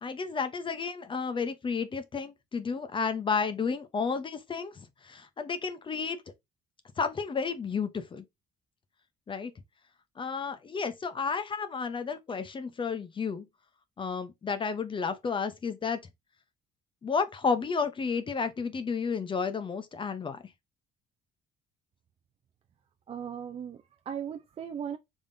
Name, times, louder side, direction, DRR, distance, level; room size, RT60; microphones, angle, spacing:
voice 1, 0.0-6.2 7.0-8.2 9.3-9.5 10.2-13.5 14.0-16.0 17.0-20.4, left 5 dB, 30° left, 0.7 m, -32 dB
voice 2, 23.1-25.0, right 8 dB, 35° right, 0.5 m, -37 dB
5.1 x 3.6 x 2.6 m
cardioid pair, 110°, 17 cm